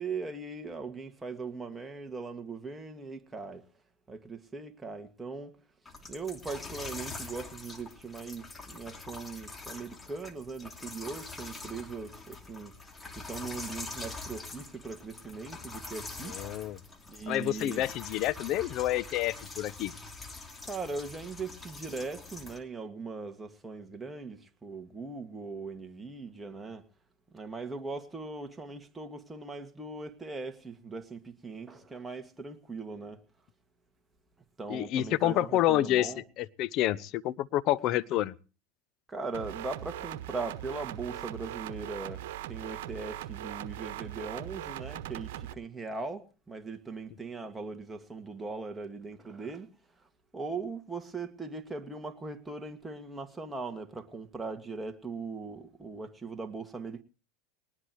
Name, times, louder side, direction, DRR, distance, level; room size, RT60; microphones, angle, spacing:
voice 1, 0.0-3.7 4.1-5.6 6.0-12.8 13.1-16.7 17.1-17.8 20.6-26.9 27.3-33.2 34.6-36.2 38.1-38.2 39.1-49.7 50.0-50.1 50.3-57.0, right 4 dB, 10° right, 2.1 m, -40 dB
sound 1, 5.9-22.6, left 3 dB, 15° left, 2.8 m, -44 dB
voice 2, 16.3-16.8 17.3-19.9 34.7-36.1 36.6-38.3, left 14 dB, 50° left, 0.9 m, -28 dB
sound 2, 39.3-45.5, right 13 dB, 70° right, 1.3 m, -40 dB
20.5 x 19.5 x 3.1 m
hypercardioid pair, 100°, 0 cm